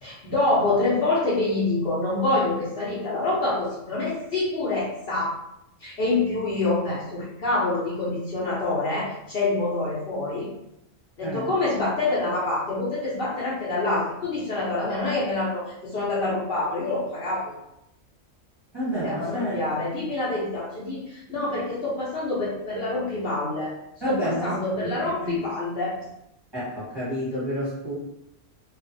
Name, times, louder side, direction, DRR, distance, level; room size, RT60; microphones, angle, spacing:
voice 1, 0.0-5.4 5.8-10.5 11.2-17.6 19.0-23.7 24.1-26.1, left 2 dB, 55° left, -8 dB, 0.8 m, -26 dB
voice 2, 18.7-19.5 24.0-25.4 26.5-27.9, equal, 20° right, -10 dB, 1.1 m, -30 dB
2.4 x 2.4 x 2.6 m, 0.83 s
omnidirectional pair, 1.3 m